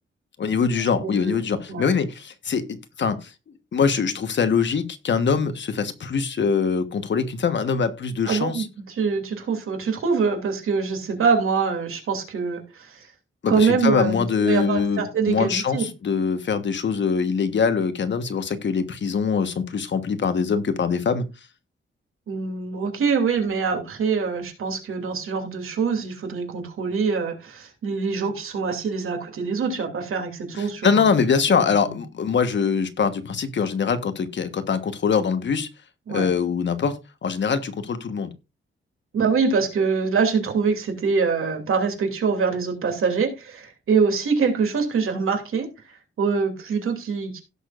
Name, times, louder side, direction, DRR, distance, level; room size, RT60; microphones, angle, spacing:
voice 1, 0.4-3.3 3.7-8.7 13.4-21.2 30.5-35.7 36.1-37.0 37.2-38.3, left 6 dB, 60° left, 1.3 m, -23 dB
voice 2, 1.0-1.4 1.7-1.9 8.3-13.1 13.5-15.9 22.3-31.0 31.5-32.0 36.1-36.3 39.1-47.4, right 5 dB, 90° right, 2.8 m, -24 dB
17.0 x 6.7 x 2.5 m
wide cardioid pair, 145°, 21 cm